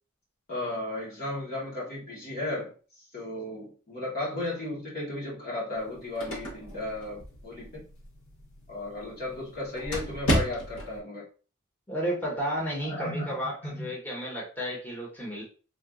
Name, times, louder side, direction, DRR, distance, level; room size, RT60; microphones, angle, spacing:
voice 1, 0.5-7.8 8.7-11.2 12.8-13.3 13.6-13.9, left 1 dB, 45° left, -6 dB, 1.0 m, -35 dB
sound 1, 5.8-11.0, right 1 dB, 70° left, 1.0 m, -34 dB
voice 2, 11.9-15.4, equal, 10° left, -4 dB, 1.0 m, -32 dB
3.9 x 2.4 x 2.3 m, 0.37 s
head